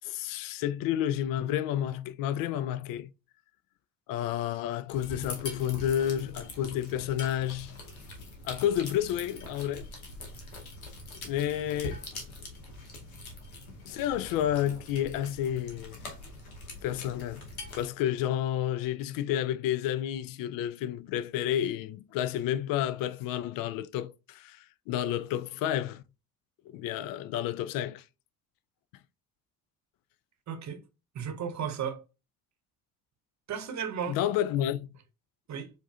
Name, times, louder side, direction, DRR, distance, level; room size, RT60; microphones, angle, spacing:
voice 1, 0.0-3.1 4.1-7.8 8.4-9.9 11.2-12.0 13.9-16.0 16.8-17.5 17.7-26.0 26.7-28.0 34.1-34.9, left 11 dB, 55° left, 0.5 m, -30 dB
sound 1, 4.9-17.9, left 2 dB, 90° left, 0.9 m, -43 dB
voice 2, 30.5-30.8 31.1-32.1 33.5-34.2 35.5-35.7, right 7 dB, 40° right, 0.9 m, -34 dB
4.7 x 2.5 x 2.3 m
hypercardioid pair, 50°, 41 cm